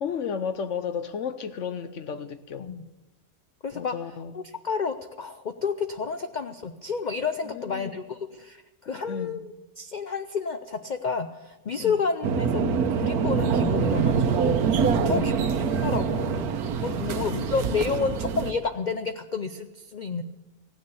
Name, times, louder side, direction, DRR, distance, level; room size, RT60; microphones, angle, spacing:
voice 1, 0.0-2.7 3.7-4.4 7.4-8.0 8.9-9.4 11.8-12.0 14.9-15.5 16.8-17.6, left 6 dB, 60° left, 0.9 m, -34 dB
voice 2, 3.6-3.9 4.3-14.6 15.0-15.5 15.8-20.2, left 5 dB, 75° left, 0.4 m, -30 dB
sound 1, 12.2-18.5, right 6 dB, 85° right, 1.3 m, -25 dB
15.5 x 9.5 x 6.9 m
omnidirectional pair, 1.6 m